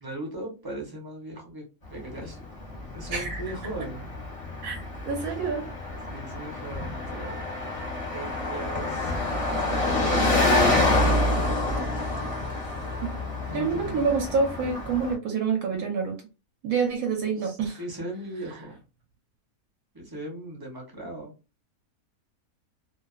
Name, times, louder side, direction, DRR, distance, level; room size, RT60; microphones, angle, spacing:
voice 1, 0.0-1.6 1.9-2.4 2.9-4.1 6.1-7.5 8.1-9.1 9.5-11.7 13.5-14.1 17.4-18.8 19.9-21.3, right 1 dB, 25° right, 0.5 m, -37 dB
Car passing by, 1.9-15.1, left 2 dB, 30° left, 0.7 m, -27 dB
voice 2, 3.1-3.4 4.6-4.8 5.1-5.7 13.0-13.1 13.5-16.2 16.6-17.8, right 5 dB, 70° right, 1.0 m, -27 dB
2.4 x 2.3 x 2.3 m
omnidirectional pair, 1.6 m